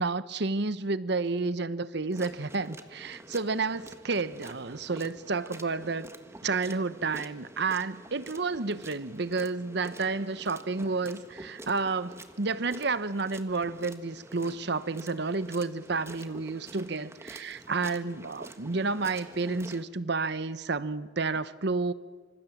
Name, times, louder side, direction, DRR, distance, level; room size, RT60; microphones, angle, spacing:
voice 1, 0.0-6.1 6.4-21.9, right 3 dB, 65° right, 1.0 m, -30 dB
sound 1, 2.1-19.8, right 1 dB, 15° right, 1.5 m, -48 dB
27.0 x 26.0 x 7.4 m
head